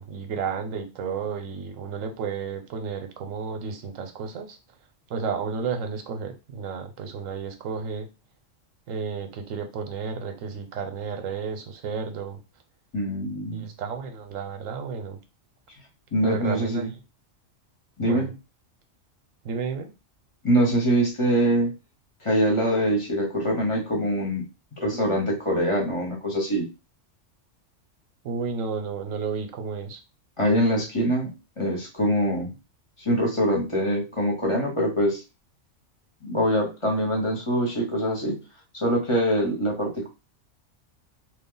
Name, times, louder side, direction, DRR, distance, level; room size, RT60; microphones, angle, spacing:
voice 1, 0.0-4.6 5.1-8.1 8.9-12.4 13.5-15.2 16.2-16.9 18.0-18.3 19.4-19.9 28.2-30.0, right 5 dB, 85° right, 6 dB, 1.1 m, -32 dB
voice 2, 12.9-13.7 16.1-16.9 18.0-18.3 20.4-21.7 22.2-24.4 24.8-26.7 30.4-31.3 31.6-32.5 33.0-35.2 36.2-38.4 38.7-40.1, equal, 25° left, -1 dB, 1.0 m, -24 dB
3.2 x 2.3 x 3.8 m, 0.27 s
omnidirectional pair, 1.3 m